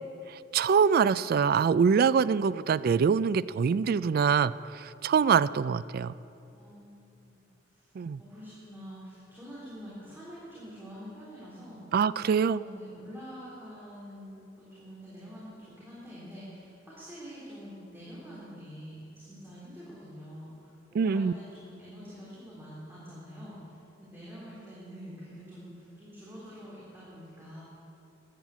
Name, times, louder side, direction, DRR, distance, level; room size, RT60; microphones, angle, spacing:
voice 1, 0.5-6.1 8.0-8.2 11.9-12.6 21.0-21.3, right 6 dB, 50° right, 17 dB, 0.3 m, -24 dB
voice 2, 6.5-7.9 8.2-11.8 12.5-27.6, equal, 10° right, -9 dB, 3.4 m, -46 dB
13.5 x 10.5 x 8.2 m, 2.8 s
head